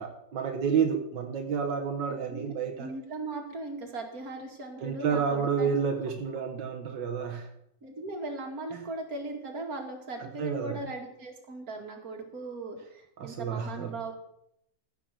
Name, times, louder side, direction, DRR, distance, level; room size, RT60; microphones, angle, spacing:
voice 1, 0.0-2.9 4.8-7.5 8.7-8.8 10.2-10.8 13.2-13.9, right 6 dB, 85° right, 4 dB, 1.9 m, -30 dB
voice 2, 2.8-5.7 7.8-14.1, right 2 dB, 55° right, 2 dB, 2.7 m, -38 dB
15.0 x 5.8 x 7.6 m, 0.76 s
omnidirectional pair, 1.9 m